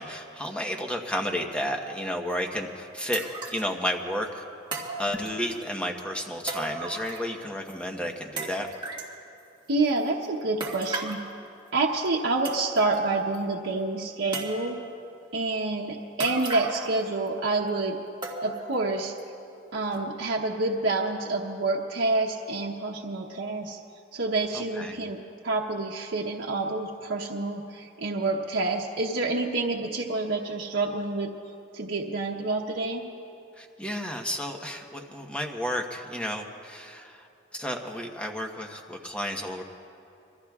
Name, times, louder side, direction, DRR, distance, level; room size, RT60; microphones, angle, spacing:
voice 1, 0.0-3.2 3.5-4.4 5.0-8.7 24.5-25.0 33.6-37.3 37.5-39.6, equal, 5° left, 2 dB, 1.1 m, -32 dB
sound 1, 2.3-2.4 3.1-3.7 4.7-5.6 6.5-7.4 7.7-7.8 8.4-9.1 10.6-11.3 12.1-12.2 12.4-13.0 13.3-13.4 14.3-14.9 16.2-17.0 17.3-17.4 18.2-18.7 19.2-19.3 19.9-20.0, right 3 dB, 25° right, 1.9 m, -35 dB
voice 2, 9.7-11.2 11.7-14.8 15.3-18.0 18.4-19.1 19.7-23.8 24.1-31.3 31.7-33.0, right 3 dB, 80° right, -3 dB, 1.0 m, -28 dB
26.5 x 22.5 x 2.4 m, 2.7 s
head